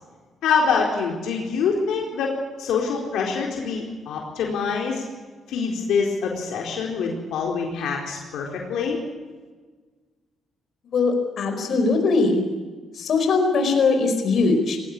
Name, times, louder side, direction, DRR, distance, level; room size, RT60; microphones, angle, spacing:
voice 1, 0.4-2.3 2.6-5.0 5.5-9.0, left 5 dB, 80° left, -1 dB, 4.3 m, -25 dB
voice 2, 10.9-12.4 12.9-14.8, left 3 dB, 60° left, 5 dB, 4.9 m, -20 dB
20.0 x 18.5 x 8.5 m, 1.4 s
cardioid pair, 90°, 0 cm